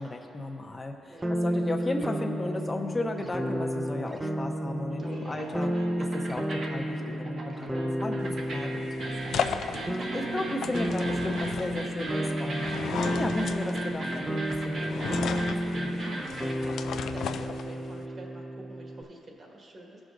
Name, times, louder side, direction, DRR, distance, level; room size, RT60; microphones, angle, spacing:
voice 1, 0.0-5.7 6.0-12.7 13.2-15.1 15.4-16.1, left 2 dB, 25° left, 2 dB, 0.8 m, -35 dB
voice 2, 1.1-1.6 5.0-5.7 7.5-7.9 10.0-10.4 16.0-20.0, right 1 dB, 45° right, -1 dB, 1.6 m, -48 dB
sound 1, 1.2-19.0, equal, 10° right, 0.5 m, -32 dB
sound 2, 2.4-4.7 4.9-16.5, right 2 dB, 65° right, 1.3 m, -38 dB
sound 3, 8.2-18.0, left 7 dB, 80° left, 0.3 m, -36 dB
16.5 x 6.2 x 2.6 m, 3.0 s
cardioid pair, 95°, 0 cm